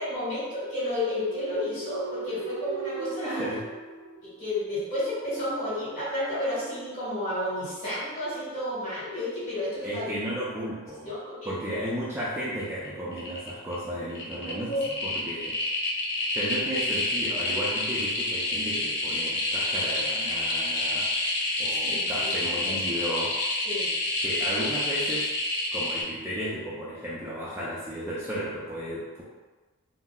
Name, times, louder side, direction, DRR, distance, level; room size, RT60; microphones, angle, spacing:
voice 1, 0.0-3.6 4.2-10.1 11.0-11.5 14.4-14.8 21.8-22.3 22.6-22.7 23.6-23.9, left 1 dB, 35° left, -9 dB, 1.4 m, -31 dB
sound 1, 1.0-4.9, right 5 dB, 75° right, 0.5 m, -38 dB
voice 2, 3.2-3.7 9.8-11.1 11.5-14.7 15.0-15.6 16.2-21.1 21.6-23.4 24.2-25.3 25.7-29.2, equal, 10° right, -8 dB, 0.4 m, -34 dB
sound 2, 12.6-12.9 13.1-13.7 14.1-26.0, left 2 dB, 55° left, 0.7 m, -28 dB
3.9 x 2.0 x 2.2 m, 1.3 s
head